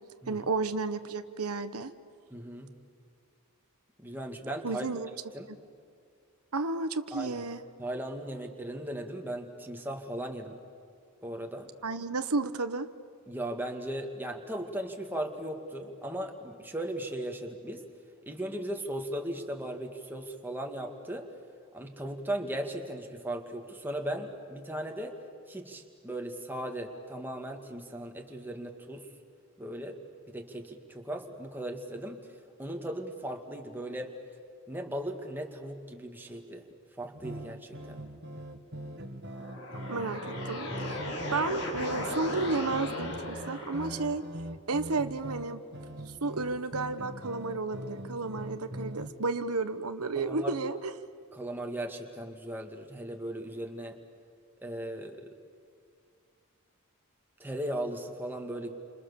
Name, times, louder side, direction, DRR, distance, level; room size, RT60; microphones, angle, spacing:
voice 1, 0.3-1.9 4.6-5.1 6.5-7.6 11.8-12.9 39.9-41.0 41.3-44.2 44.7-45.6 46.2-50.9, right 3 dB, 90° right, 9 dB, 1.2 m, -32 dB
voice 2, 2.3-2.7 4.0-4.9 5.3-5.5 7.1-7.4 7.8-10.6 11.2-11.7 13.3-17.8 18.3-21.3 21.7-25.2 25.5-29.1 29.6-30.0 30.3-32.2 32.6-34.1 34.7-36.6 37.0-38.0 50.3-50.5 51.3-54.0 54.6-55.3 57.4-58.8, right 1 dB, 10° right, 2 dB, 2.0 m, -37 dB
sound 1, 37.1-49.1, right 1 dB, 50° right, 1.9 m, -42 dB
sound 2, 39.2-44.2, left 1 dB, 75° left, 5.2 m, -37 dB
30.0 x 26.5 x 7.0 m, 2.3 s
head